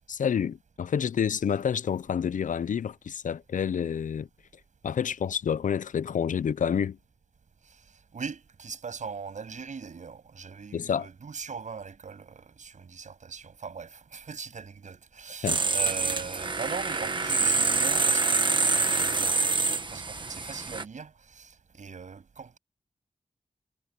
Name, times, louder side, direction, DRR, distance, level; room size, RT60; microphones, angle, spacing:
voice 1, 0.1-4.3 4.8-7.0 10.7-11.1 15.4-15.6, left 7 dB, 80° left, 0.6 m, -28 dB
voice 2, 7.6-22.6, right 5 dB, 70° right, 7.8 m, -41 dB
sound 1, 15.5-20.8, right 3 dB, 35° right, 1.4 m, -26 dB
wide cardioid pair, 145°, 13 cm